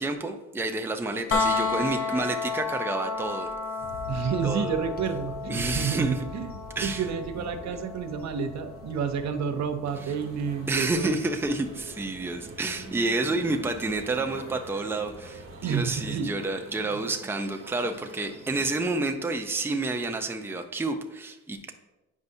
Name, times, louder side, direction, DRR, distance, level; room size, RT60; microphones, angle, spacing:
voice 1, 0.0-3.5 4.4-4.8 5.5-6.2 6.8-7.0 10.7-21.7, right 2 dB, 10° right, 4 dB, 0.6 m, -29 dB
sound 1, 1.3-13.1 15.0-15.1, left 4 dB, 50° left, 0.8 m, -34 dB
sound 2, 3.8-16.3, left 1 dB, 30° left, 1.2 m, -45 dB
voice 2, 4.1-11.1 15.6-16.3 16.9-17.0, right 7 dB, 65° right, 7 dB, 0.7 m, -30 dB
sound 3, 9.8-18.7, right 3 dB, 45° right, 1.2 m, -46 dB
8.2 x 5.3 x 2.7 m, 1.0 s
cardioid pair, 90°, 30 cm